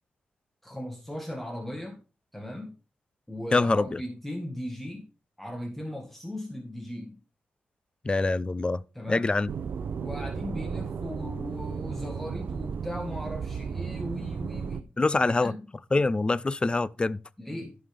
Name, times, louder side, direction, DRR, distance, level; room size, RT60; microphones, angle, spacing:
voice 1, 0.6-2.0 2.3-2.7 3.3-5.1 5.4-7.2 9.0-9.3 10.0-14.9 15.2-15.6 17.4-17.8, left 1 dB, 5° left, 1.8 m, -37 dB
voice 2, 3.5-4.0 8.0-8.8 9.1-9.5 15.0-15.5 15.9-17.2, left 3 dB, 25° left, 0.5 m, -24 dB
sound 1, 9.5-14.8, right 6 dB, 65° right, 0.5 m, -34 dB
14.5 x 5.6 x 3.6 m
cardioid pair, 80°, 4 cm